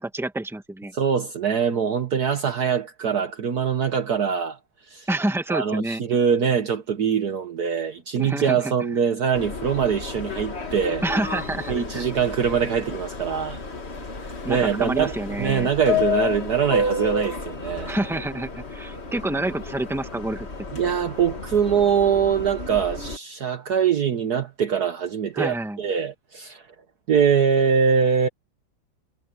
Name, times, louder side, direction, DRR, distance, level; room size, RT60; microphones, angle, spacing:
voice 1, 0.0-0.9 5.1-6.0 8.2-8.7 11.0-12.0 14.4-15.7 17.9-20.5 25.3-25.8, right 1 dB, ahead, 1.8 m, -28 dB
voice 2, 0.9-4.6 4.9-5.1 5.5-11.0 11.7-13.6 14.5-15.1 15.4-17.9 20.7-26.6 27.1-28.3, right 7 dB, 55° right, 1.5 m, -23 dB
Subway metro underground, 9.3-23.2, left 3 dB, 35° left, 2.1 m, -31 dB
omnidirectional pair, 2.2 m